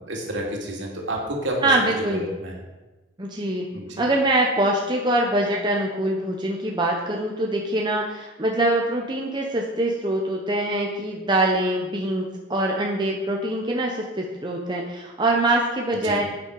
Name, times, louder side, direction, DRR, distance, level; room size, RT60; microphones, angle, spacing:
voice 1, 0.1-2.5 3.7-3.9 16.0-16.2, right 1 dB, 65° right, -1 dB, 2.7 m, -30 dB
voice 2, 1.6-2.3 3.2-3.7 4.0-16.2, right 1 dB, 25° right, -1 dB, 1.0 m, -24 dB
11.0 x 8.8 x 4.8 m, 1.1 s
head